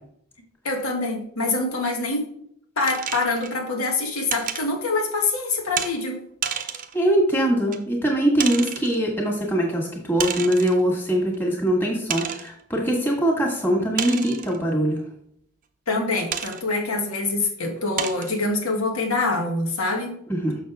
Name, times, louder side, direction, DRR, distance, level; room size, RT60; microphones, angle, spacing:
voice 1, 0.6-2.3 2.8-6.2 15.9-20.2, left 3 dB, 80° left, 1 dB, 1.8 m, -25 dB
sound 1, 2.8-3.6 4.3-4.7 5.8-5.9 6.4-7.0 7.7-7.8 8.4-9.0 10.2-10.8 11.3-11.4 12.1-12.5 14.0-14.6 16.3-16.6 17.3-17.4 18.0-18.3, right 8 dB, 35° right, 0.6 m, -30 dB
voice 2, 6.9-15.0 20.3-20.6, right 1 dB, 10° left, -2 dB, 1.8 m, -22 dB
6.5 x 6.5 x 3.5 m, 0.67 s
head